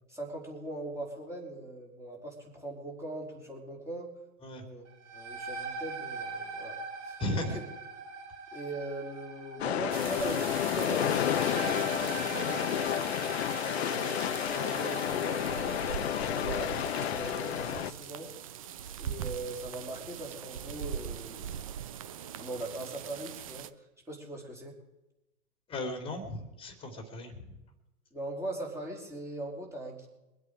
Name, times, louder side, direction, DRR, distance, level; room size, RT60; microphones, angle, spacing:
voice 1, 0.1-4.1 4.6-4.8 5.1-6.8 7.0-7.5 8.5-13.1 13.5-15.8 16.1-18.3 19.0-21.6 22.4-24.7 28.1-30.1, right 1 dB, 5° right, -1 dB, 3.6 m, -40 dB
sound 1, 4.9-16.3, right 4 dB, 55° right, 3.1 m, -42 dB
voice 2, 7.2-7.6 16.2-16.4 25.7-27.6, left 1 dB, 10° left, 6 dB, 2.8 m, -36 dB
sound 2, 9.6-17.9, left 10 dB, 50° left, 0.8 m, -31 dB
sound 3, 9.9-23.7, right 9 dB, 25° right, 0.4 m, -41 dB
23.5 x 8.2 x 4.8 m, 0.99 s
hypercardioid pair, 130°, 43 cm